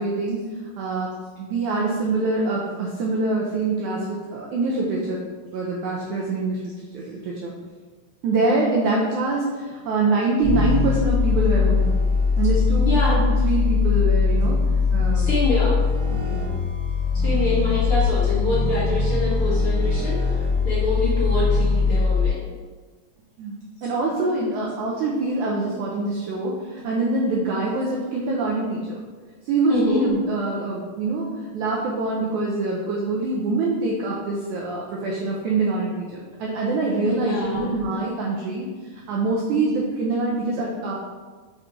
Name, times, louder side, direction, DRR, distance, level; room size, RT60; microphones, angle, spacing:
voice 1, 0.0-5.2 5.5-7.5 8.2-11.9 12.4-15.3 16.1-16.5 23.4-29.0 29.4-38.7 39.1-41.0, right 3 dB, 90° right, -3 dB, 1.7 m, -25 dB
sound 1, 10.4-22.3, left 5 dB, 50° right, 2.9 m, -21 dB
voice 2, 12.8-13.2 15.1-15.8 17.1-22.4 24.4-24.5 29.7-30.1 37.1-37.8, left 1 dB, 60° left, -8 dB, 1.4 m, -26 dB
6.0 x 3.9 x 4.7 m, 1.4 s
omnidirectional pair, 4.3 m